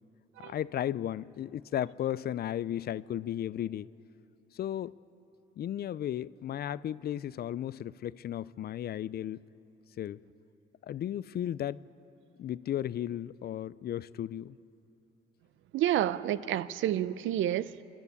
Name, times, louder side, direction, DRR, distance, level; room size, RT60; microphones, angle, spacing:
voice 1, 0.4-3.9 4.5-4.9 5.6-9.4 10.0-10.2 10.8-11.8 12.4-14.6, left 11 dB, 55° left, 0.4 m, -34 dB
voice 2, 15.7-17.8, right 12 dB, 80° right, 0.6 m, -29 dB
28.0 x 11.5 x 8.3 m
cardioid pair, 90°, 20 cm